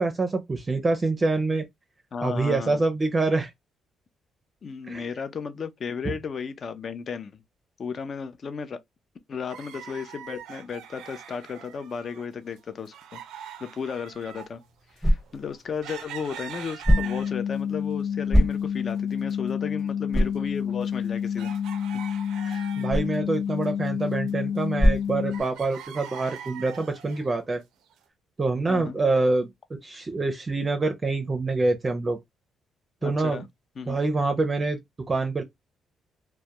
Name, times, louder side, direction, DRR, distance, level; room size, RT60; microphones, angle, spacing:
voice 1, 0.0-1.6 2.2-3.5 4.9-5.1 6.1-6.2 22.7-27.6 28.4-29.5 29.8-32.2 33.0-33.4 33.9-34.8 35.1-35.4, right 3 dB, 30° right, 0.5 m, -26 dB
voice 2, 2.1-2.8 4.6-7.4 7.8-8.8 9.3-13.2 13.6-14.6 14.9-21.5 22.4-22.7 28.7-29.0 33.0-33.5 33.8-34.0, left 6 dB, 50° left, 0.5 m, -34 dB
sound 1, 9.5-12.3 12.5-17.6 18.1-19.0 19.2-19.3 19.9-23.2 23.5-25.0 25.3-27.3 27.9-28.0, right 9 dB, 90° right, 0.4 m, -42 dB
sound 2, 14.1-25.9, equal, 10° left, 0.9 m, -29 dB
sound 3, 16.9-25.4, left 8 dB, 85° left, 0.9 m, -29 dB
2.2 x 2.1 x 2.8 m
cardioid pair, 90°, 0 cm